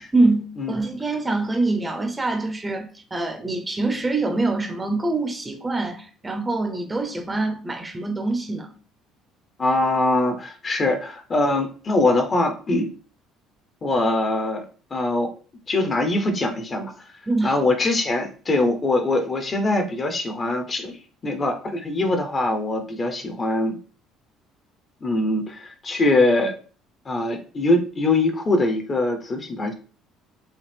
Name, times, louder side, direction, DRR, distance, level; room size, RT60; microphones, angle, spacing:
voice 1, 0.1-8.7 17.3-17.6, right 2 dB, 15° right, 0.7 m, -24 dB
voice 2, 9.6-12.9 13.8-14.6 14.9-15.3 15.7-17.1 17.4-23.8 25.0-26.5 27.1-29.7, left 2 dB, 25° left, 0.8 m, -22 dB
5.7 x 2.5 x 3.4 m
cardioid pair, 135°, 0 cm